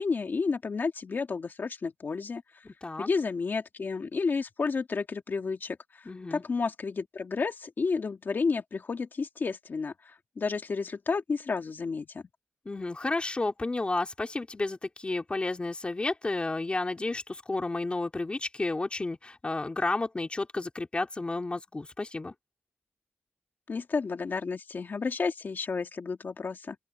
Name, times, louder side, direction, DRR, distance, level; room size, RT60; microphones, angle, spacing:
voice 1, 0.0-2.4 3.0-12.2 23.7-26.8, left 4 dB, 50° left, 2.2 m, -31 dB
voice 2, 6.1-6.4 12.7-22.3, left 2 dB, 25° left, 2.6 m, -31 dB
open air
wide cardioid pair, 130°, 4 cm